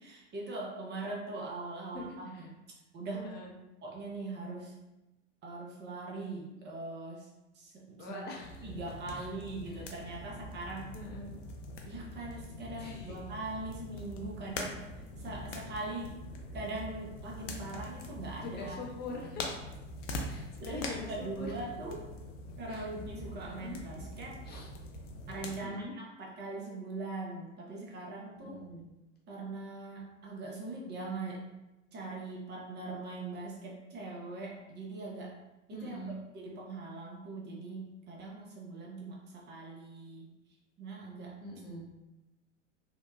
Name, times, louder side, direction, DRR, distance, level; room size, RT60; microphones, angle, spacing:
voice 1, 0.0-2.6 2.9-3.3 3.8-4.8 5.4-8.2 8.6-10.9 11.8-16.2 16.5-18.8 19.2-19.4 20.6-22.0 22.6-24.4 25.3-28.5 29.3-31.5 31.9-35.4 35.7-36.0 36.3-40.3 40.8-41.4, right 2 dB, 30° right, -2 dB, 0.7 m, -41 dB
voice 2, 1.9-2.5 3.1-3.5 8.0-8.6 9.1-9.3 10.9-11.3 12.8-13.2 18.4-19.5 20.3-21.5 22.7-22.9 23.4-23.8 24.5-24.7 25.5-25.9 28.3-28.9 35.7-36.2 41.4-41.9, left 2 dB, 25° left, -1 dB, 0.6 m, -43 dB
sound 1, 8.4-25.6, left 1 dB, 80° left, 0.5 m, -43 dB
2.7 x 2.1 x 2.3 m, 1.0 s
hypercardioid pair, 90°, 37 cm